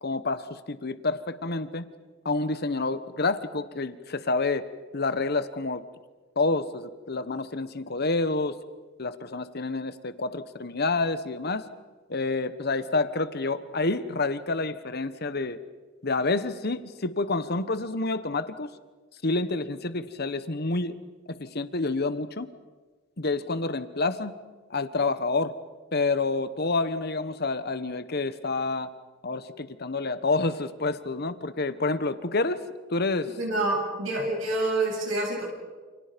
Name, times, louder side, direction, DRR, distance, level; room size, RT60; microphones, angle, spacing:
voice 1, 0.0-1.8 2.2-4.6 4.9-5.8 6.4-8.6 9.0-11.7 12.1-15.6 16.0-18.7 19.2-20.9 21.3-22.5 23.2-24.3 24.7-25.5 25.9-28.9 29.2-32.6 32.9-33.3, left 3 dB, 55° left, 12 dB, 1.3 m, -28 dB
voice 2, 33.4-35.4, right 2 dB, 85° right, -1 dB, 7.7 m, -27 dB
29.5 x 28.5 x 5.3 m, 1.3 s
head